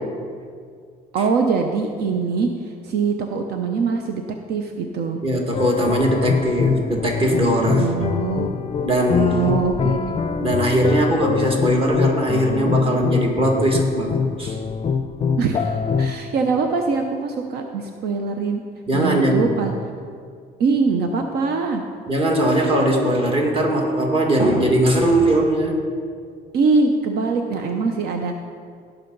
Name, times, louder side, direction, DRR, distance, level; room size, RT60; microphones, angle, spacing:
voice 1, 1.1-4.2 4.5-5.2 7.8-8.5 9.3-10.2 15.4-18.6 18.9-19.7 20.6-21.8 26.5-28.4, right 4 dB, 70° right, 4 dB, 0.7 m, -23 dB
voice 2, 5.2-7.9 8.8-9.5 10.4-14.6 18.9-19.5 22.1-25.8, right 1 dB, 30° right, 0 dB, 1.9 m, -20 dB
sound 1, 5.5-16.1, left 6 dB, 35° left, 0.4 m, -24 dB
17.0 x 5.7 x 3.9 m, 2.1 s
cardioid pair, 110°, 17 cm